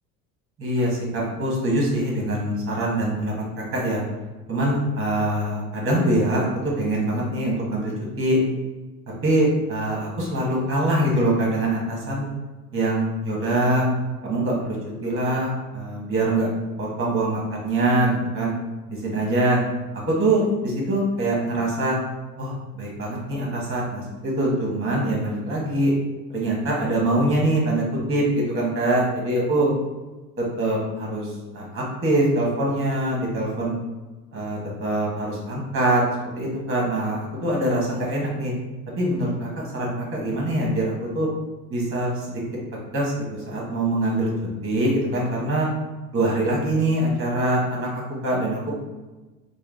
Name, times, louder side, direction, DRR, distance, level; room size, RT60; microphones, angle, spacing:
voice 1, 0.6-4.0 4.5-8.4 9.2-12.3 12.7-13.9 14.2-14.8 15.0-16.5 16.8-18.5 18.9-19.6 20.1-22.0 22.4-25.9 26.3-29.7 30.4-33.7 34.3-36.0 36.3-38.5 39.0-41.3 41.7-42.4 42.7-44.3 44.6-45.7 46.1-48.7, right 1 dB, 25° right, -3 dB, 1.5 m, -24 dB
3.6 x 2.2 x 3.6 m, 1.2 s
hypercardioid pair, 70°, 48 cm